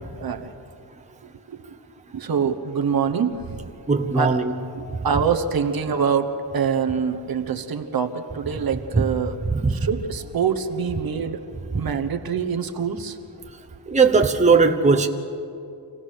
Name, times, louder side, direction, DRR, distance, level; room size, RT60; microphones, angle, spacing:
voice 1, 0.2-0.5 1.5-1.8 2.1-3.6 4.1-4.4 4.7-9.4 9.7-11.4 11.7-13.2, right 6 dB, 50° right, 6 dB, 1.2 m, -25 dB
voice 2, 3.9-4.5 9.0-9.1 9.5-9.8 13.9-15.1, right 4 dB, 15° right, 4 dB, 1.0 m, -18 dB
26.5 x 16.5 x 6.5 m, 2.5 s
wide cardioid pair, 120°, 45 cm